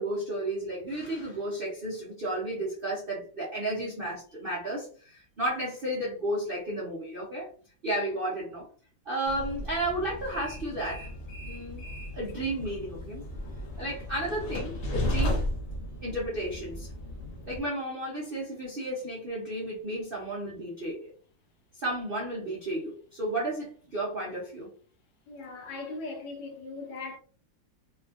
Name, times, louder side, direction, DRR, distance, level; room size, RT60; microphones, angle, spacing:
voice 1, 0.0-7.5 7.8-8.7 9.0-11.1 11.4-11.8 12.1-13.2 13.8-15.4 16.0-16.9 17.5-21.1 21.8-24.7, right 1 dB, 55° right, 0.6 m, -33 dB
Train, 9.3-17.6, left 1 dB, 60° left, 0.7 m, -35 dB
voice 2, 25.3-27.2, left 3 dB, 75° left, 1.4 m, -39 dB
3.3 x 2.4 x 2.4 m
omnidirectional pair, 2.0 m